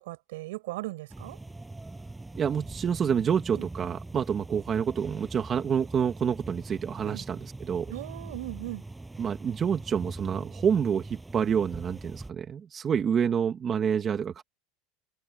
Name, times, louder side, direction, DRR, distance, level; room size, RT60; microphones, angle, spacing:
voice 1, 0.0-1.4 3.5-3.7 7.0-7.2 7.9-8.8, right 19 dB, 80° right, 7.4 m, -38 dB
sound 1, 1.1-12.3, right 2 dB, 10° right, 6.8 m, -42 dB
voice 2, 2.4-7.9 9.2-14.4, right 7 dB, 25° right, 2.3 m, -28 dB
supercardioid pair, 135°, 0 cm